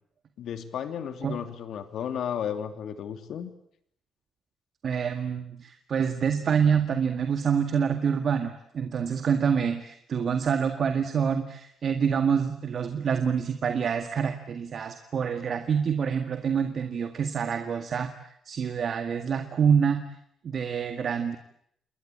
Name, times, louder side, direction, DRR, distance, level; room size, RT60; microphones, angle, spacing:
voice 1, 0.4-3.5, left 8 dB, 70° left, 9 dB, 2.9 m, -33 dB
voice 2, 4.8-20.1 20.4-21.4, right 7 dB, 55° right, 7 dB, 2.0 m, -26 dB
29.0 x 21.5 x 8.6 m, 0.72 s
cardioid pair, 90°, 0 cm